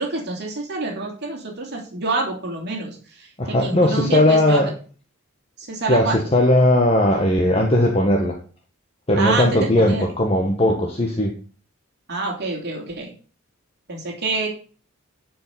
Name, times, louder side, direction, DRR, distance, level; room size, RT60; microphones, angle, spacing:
voice 1, 0.0-4.6 5.6-6.2 9.2-10.0 12.1-13.1 13.9-14.5, right 3 dB, 55° right, 3.1 m, -27 dB
voice 2, 3.4-4.7 5.9-8.4 9.1-11.3, left 1 dB, 30° left, 1.4 m, -18 dB
11.0 x 5.5 x 6.8 m
head